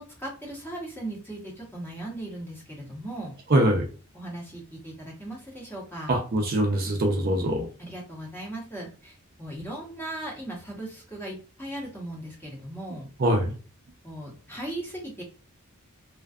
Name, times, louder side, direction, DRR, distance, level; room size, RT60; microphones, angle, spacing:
voice 1, 0.0-3.4 4.1-6.2 7.8-13.1 14.0-15.2, right 1 dB, 10° left, -3 dB, 0.8 m, -38 dB
voice 2, 3.5-3.9 6.1-7.7 13.2-13.5, right 1 dB, 40° right, 1 dB, 0.4 m, -23 dB
2.5 x 2.3 x 2.3 m, 0.38 s
head